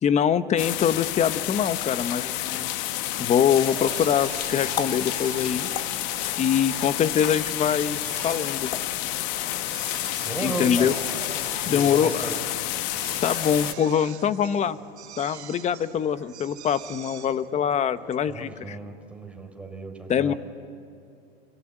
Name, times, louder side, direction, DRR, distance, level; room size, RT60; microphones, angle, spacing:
voice 1, 0.0-2.7 3.2-5.7 6.4-8.0 8.2-8.7 10.4-10.9 11.7-12.3 12.9-14.8 15.2-18.8 20.1-20.3, left 8 dB, 20° left, 14 dB, 1.0 m, -24 dB
sound 1, 0.6-13.7, left 14 dB, 50° left, 1.4 m, -30 dB
Drill, 3.5-18.8, right 10 dB, 85° right, 1.8 m, -44 dB
sound 2, 3.6-9.4, left 7 dB, 85° left, 1.9 m, -40 dB
voice 2, 10.2-10.9 11.6-12.4 18.3-20.4, right 2 dB, 5° right, 2 dB, 4.4 m, -34 dB
29.0 x 23.0 x 9.0 m, 2.5 s
supercardioid pair, 130°, 32 cm